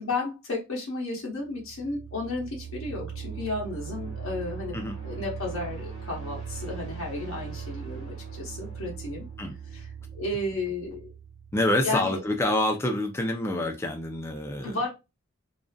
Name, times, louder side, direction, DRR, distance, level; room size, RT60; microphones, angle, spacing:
voice 1, 0.0-4.8 5.0-9.3 9.7-9.9 10.1-11.1 11.8-12.2 14.6-14.9, left 2 dB, 65° left, 0.8 m, -33 dB
sound 1, 1.5-12.2, right 6 dB, 70° right, 0.9 m, -39 dB
voice 2, 11.5-14.8, left 1 dB, 10° left, 0.3 m, -27 dB
2.4 x 2.4 x 2.2 m
head